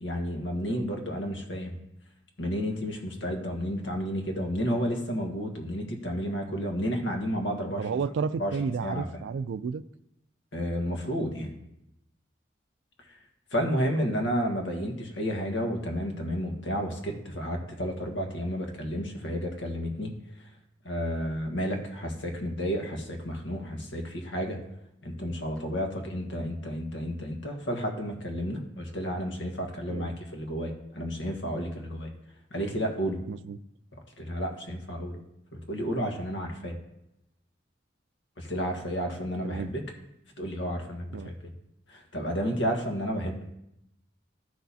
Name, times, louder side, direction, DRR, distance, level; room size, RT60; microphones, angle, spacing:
voice 1, 0.0-1.8 2.4-7.9 8.4-8.5 8.8-9.1 10.5-11.5 13.5-20.1 20.8-24.6 25.0-32.1 32.5-33.2 34.2-35.2 35.5-36.7 38.4-39.7 40.4-41.5 41.9-43.5, equal, 85° left, 2 dB, 1.4 m, -31 dB
voice 2, 7.8-9.8 14.0-14.1 29.9-30.1 33.3-33.6 39.4-39.7 41.1-41.3, right 5 dB, 75° right, 15 dB, 0.3 m, -32 dB
13.0 x 6.2 x 2.8 m, 0.84 s
head